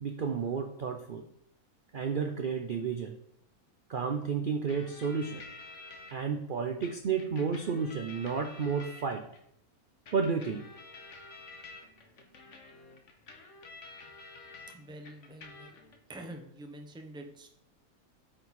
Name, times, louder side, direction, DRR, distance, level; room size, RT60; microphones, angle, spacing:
voice 1, 0.0-1.2 1.9-3.1 3.9-5.4 6.1-9.2 10.1-10.6, right 5 dB, 65° right, 5 dB, 0.5 m, -31 dB
sound 1, 4.7-6.1 6.8-9.4 10.1-14.7 15.0-16.0, left 3 dB, 55° left, 1.3 m, -50 dB
voice 2, 14.7-15.8 16.1-17.5, right 1 dB, 5° right, 4 dB, 0.4 m, -46 dB
8.6 x 4.5 x 4.1 m, 0.73 s
omnidirectional pair, 1.6 m